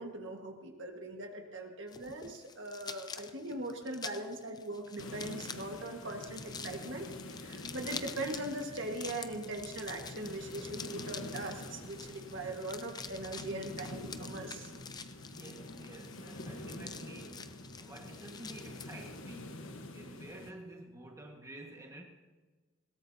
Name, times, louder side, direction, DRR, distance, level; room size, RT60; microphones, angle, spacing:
voice 1, 0.0-14.7, right 1 dB, 60° right, 2 dB, 1.7 m, -41 dB
sound 1, 1.9-19.2, left 5 dB, 20° left, 0.5 m, -48 dB
sound 2, 5.0-20.5, left 1 dB, 70° left, 1.3 m, -46 dB
voice 2, 15.3-22.0, right 1 dB, 15° right, 0 dB, 1.7 m, -50 dB
20.5 x 18.5 x 2.9 m, 1.3 s
head